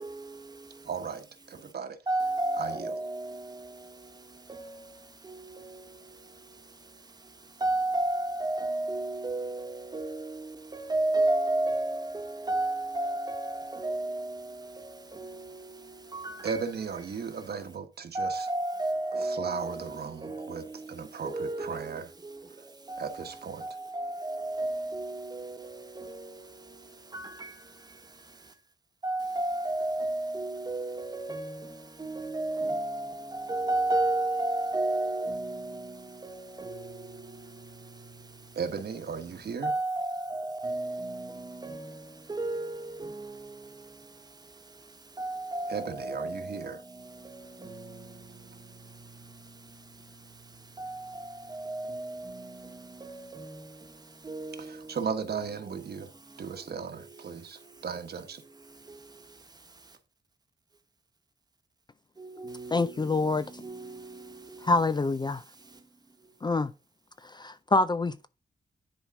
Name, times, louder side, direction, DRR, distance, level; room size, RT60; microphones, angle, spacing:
voice 1, 0.8-2.0 2.6-2.9 16.4-18.5 19.1-22.1 22.6-22.7 23.0-23.8 38.5-39.7 45.7-46.8 54.6-56.1 56.4-58.4, right 6 dB, 65° right, 1.3 m, -36 dB
voice 2, 2.1-3.1 4.5-4.6 7.6-9.6 9.9-10.2 10.7-14.2 16.2-16.6 18.1-19.6 20.2-20.5 21.2-21.8 24.0-25.1 26.0-26.1 27.1-27.3 29.0-31.6 32.0-33.0 33.5-35.4 36.6-36.8 39.6-41.1 41.6-41.8 42.3-42.7 43.0-43.3 45.2-45.7 46.0-46.3 51.7-52.0 53.0-53.4 54.3-54.5, right 2 dB, 20° right, 1.1 m, -30 dB
voice 3, 62.7-63.5 64.6-65.4 66.4-66.7 67.2-68.3, left 3 dB, 25° left, 0.4 m, -26 dB
10.5 x 4.6 x 3.6 m
wide cardioid pair, 165°, 18 cm